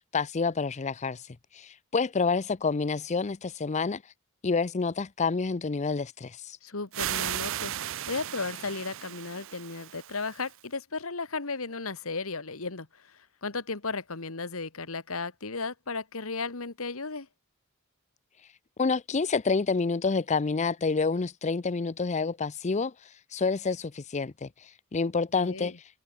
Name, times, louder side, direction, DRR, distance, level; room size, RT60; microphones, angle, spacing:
voice 1, 0.1-1.2 1.5-4.0 4.4-6.6 18.8-22.9 23.3-24.5 24.9-25.7, left 4 dB, 30° left, 0.5 m, -28 dB
voice 2, 6.6-17.3 25.3-25.8, left 4 dB, 70° left, 1.7 m, -35 dB
sound 1, 6.9-10.6, right 12 dB, 60° right, 0.5 m, -36 dB
head